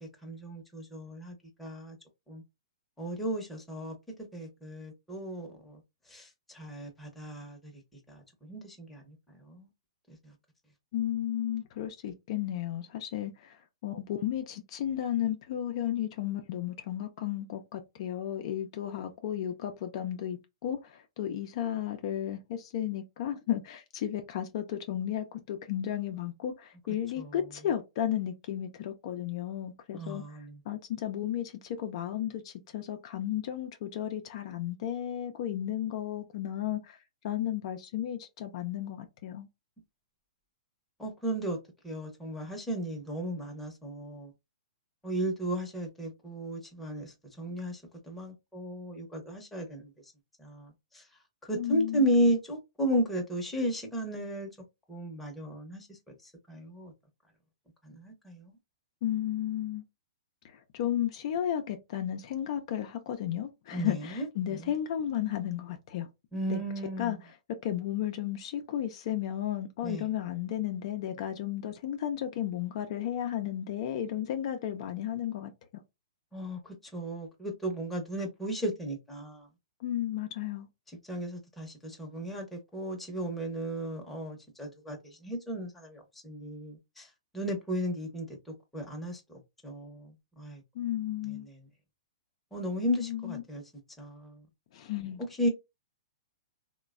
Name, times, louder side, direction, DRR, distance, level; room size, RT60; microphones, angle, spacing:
voice 1, 0.0-2.0 2.3-2.4 3.0-4.0 4.3-5.8 6.1-7.7 8.1-9.7 10.2-10.3 27.2-27.3 29.9-30.6 41.0-41.6 41.8-44.3 45.0-47.8 48.1-49.9 50.4-51.0 51.5-54.5 54.9-55.9 56.2-56.9 57.8-58.5 63.7-64.6 66.3-67.2 69.8-70.1 76.3-79.5 81.1-88.4 88.7-90.6 91.3-91.6 92.5-93.6 94.0-94.5 95.4-95.5, equal, 5° left, 0.8 m, -34 dB
voice 2, 10.9-30.2 30.7-37.0 37.2-39.5 51.5-52.1 59.0-59.8 60.4-66.1 66.5-66.6 67.0-67.2 67.6-75.5 79.8-80.7 90.8-91.5 93.0-93.4 94.7-95.2, left 11 dB, 50° left, 0.5 m, -33 dB
3.0 x 2.2 x 2.4 m
hypercardioid pair, 140°, 4 cm